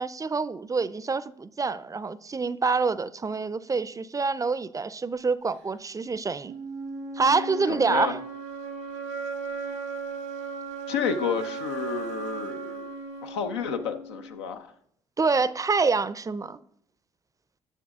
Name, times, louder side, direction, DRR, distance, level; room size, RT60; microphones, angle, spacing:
voice 1, 0.0-6.6 7.2-8.2 15.2-16.6, right 4 dB, 25° right, 0.5 m, -26 dB
sound 1, 6.4-14.4, right 4 dB, 90° right, 1.1 m, -36 dB
voice 2, 7.7-8.1 10.9-12.9 13.2-14.7, left 6 dB, 85° left, 0.6 m, -30 dB
9.2 x 6.6 x 3.6 m
hypercardioid pair, 50°, 14 cm